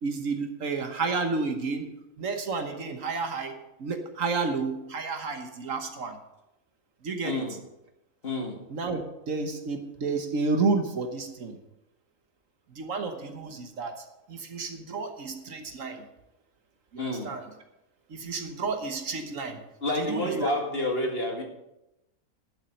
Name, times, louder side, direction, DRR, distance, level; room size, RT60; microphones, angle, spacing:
voice 1, 0.0-1.9 2.2-3.5 3.8-6.2 7.0-7.4 8.7-9.0 9.3-11.6 12.8-14.0 14.3-16.0 16.9-17.4 18.1-19.6 20.0-20.5, right 4 dB, 60° right, 6 dB, 1.4 m, -31 dB
voice 2, 7.2-7.6 8.2-8.6 17.0-17.3 19.8-21.4, left 1 dB, 40° left, 1 dB, 2.1 m, -29 dB
11.5 x 7.2 x 6.4 m, 0.91 s
omnidirectional pair, 1.5 m